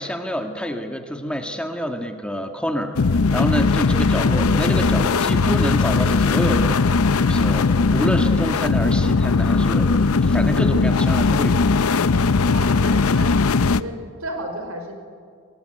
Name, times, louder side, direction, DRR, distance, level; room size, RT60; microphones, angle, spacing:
voice 1, 0.0-2.9 3.3-6.8 7.2-11.6, equal, 5° left, 4 dB, 1.7 m, -27 dB
sound 1, 3.0-13.8, left 4 dB, 80° left, 0.7 m, -18 dB
voice 2, 3.9-4.5 12.4-13.3 13.6-15.0, right 1 dB, 80° right, 5 dB, 5.1 m, -34 dB
25.5 x 21.5 x 9.9 m, 2.1 s
head